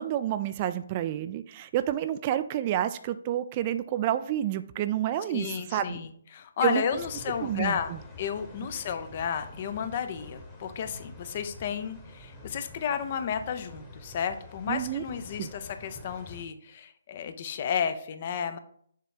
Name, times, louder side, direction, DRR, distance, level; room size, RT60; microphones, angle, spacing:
voice 1, 0.0-6.0 6.6-6.8 7.4-8.0 14.7-15.0 15.4-15.5, right 11 dB, 30° right, 12 dB, 0.3 m, -29 dB
voice 2, 5.3-7.9 8.2-18.6, left 7 dB, 40° left, 9 dB, 0.6 m, -32 dB
sound 1, 6.9-16.4, left 2 dB, 15° left, 1.2 m, -47 dB
6.7 x 3.2 x 4.8 m, 0.62 s
figure-of-eight pair, 145°, 0 cm